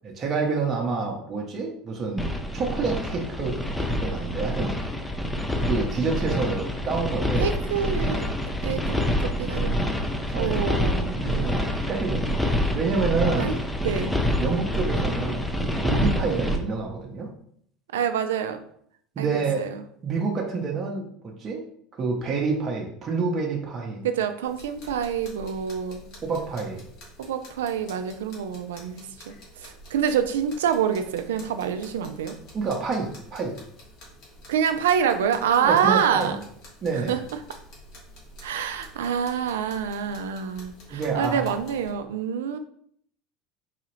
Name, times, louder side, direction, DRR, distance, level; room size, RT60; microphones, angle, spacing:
voice 1, 0.0-4.7 5.6-7.5 10.3-10.6 11.1-13.6 14.4-17.3 19.2-19.6 20.0-21.7 21.9-24.1 26.2-26.8 32.5-33.5 35.6-36.3 36.8-37.2 40.9-41.4, right 4 dB, 40° right, -1 dB, 0.7 m, -28 dB
sound 1, 2.2-16.6, left 1 dB, 5° left, 0.5 m, -27 dB
voice 2, 7.4-8.3 8.6-9.8 10.3-11.2 13.4-14.1 17.9-18.6 19.2-19.8 24.0-26.0 27.2-32.4 34.5-36.4 36.9-37.4 38.4-42.6, right 8 dB, 80° right, 9 dB, 0.4 m, -26 dB
sound 2, 24.4-41.9, left 1 dB, 60° left, 1.3 m, -48 dB
4.0 x 2.4 x 3.1 m, 0.65 s
hypercardioid pair, 75°, 0 cm